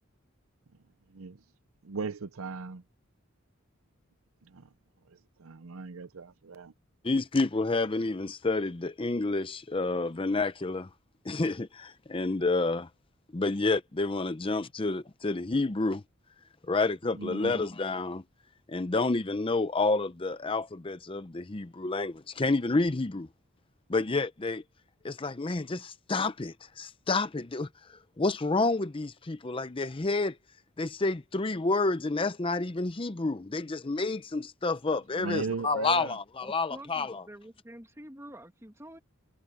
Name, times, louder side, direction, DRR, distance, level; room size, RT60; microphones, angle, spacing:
voice 1, 1.1-1.4 1.8-2.8 4.4-4.7 5.1-6.7 17.1-17.7 35.1-36.2, right 4 dB, 80° right, 0.7 m, -38 dB
voice 2, 7.0-10.9 11.2-12.9 13.3-16.0 16.7-18.2 18.7-23.3 23.9-24.6 25.0-30.4 30.8-37.2, left 3 dB, 25° left, 0.6 m, -29 dB
voice 3, 36.4-39.0, right 1 dB, 15° right, 2.3 m, -47 dB
head